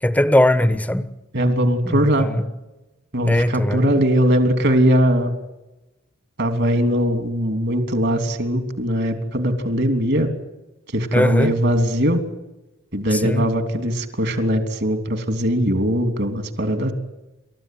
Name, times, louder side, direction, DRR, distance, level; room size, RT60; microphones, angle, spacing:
voice 1, 0.0-1.1 1.8-2.4 3.3-3.9 11.1-11.5 13.1-13.4, left 1 dB, 10° left, 1.2 m, -19 dB
voice 2, 1.3-2.3 3.1-5.3 6.4-10.3 10.9-12.2 12.9-16.9, equal, 60° right, 3.2 m, -20 dB
29.5 x 14.5 x 9.4 m
head